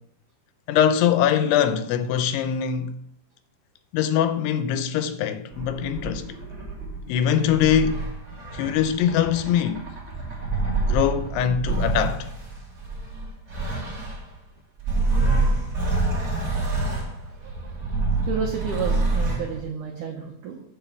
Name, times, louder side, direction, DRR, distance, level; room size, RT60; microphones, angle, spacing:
voice 1, 0.7-3.0 3.9-6.3 7.1-8.1 8.5-9.9 10.9-12.3, left 9 dB, 80° left, 2.6 m, -22 dB
sound 1, 5.5-14.3 14.8-19.6, right 3 dB, 20° right, 2.3 m, -27 dB
voice 2, 17.3-17.7 18.2-20.6, right 7 dB, 80° right, 1.8 m, -31 dB
8.8 x 4.6 x 7.1 m
omnidirectional pair, 5.0 m